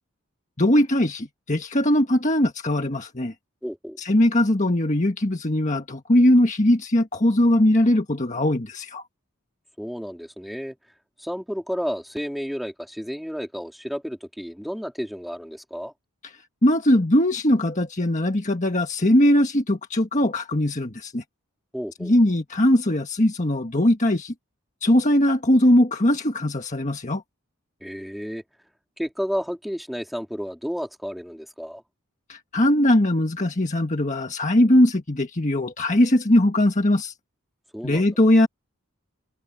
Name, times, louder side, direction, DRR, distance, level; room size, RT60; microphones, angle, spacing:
voice 1, 0.6-3.3 4.0-9.0 16.6-21.2 22.0-24.3 24.8-27.2 32.3-37.1 37.8-38.5, left 1 dB, 35° left, 1.6 m, -20 dB
voice 2, 3.6-4.0 9.8-10.8 11.2-15.9 21.7-22.1 27.8-28.4 29.0-31.8 37.7-38.1, equal, ahead, 3.8 m, -31 dB
head